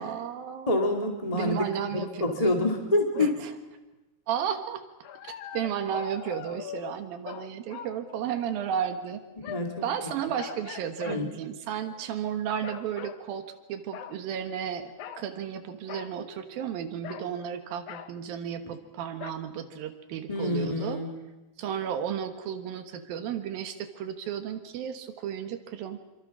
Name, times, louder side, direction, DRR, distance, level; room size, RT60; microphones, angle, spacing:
voice 1, 0.0-0.7 1.3-2.6 3.2-3.5 4.3-4.8 5.2-9.2 9.8-21.0 21.6-26.0, right 9 dB, 85° right, 8 dB, 3.2 m, -33 dB
voice 2, 0.7-1.6 1.9-3.4 9.5-9.8 11.0-11.3 20.3-21.1, left 2 dB, 10° left, 2 dB, 2.0 m, -27 dB
sound 1, 3.0-3.4 5.0-8.7 9.4-9.8 10.4-11.2 11.8-12.1 12.6-13.2 13.9-14.2 15.0-15.3 15.9-16.1 17.0-17.3 17.9-18.1 19.2-19.3, left 9 dB, 65° left, 2.3 m, -42 dB
27.0 x 25.5 x 6.2 m, 1.1 s
omnidirectional pair, 4.0 m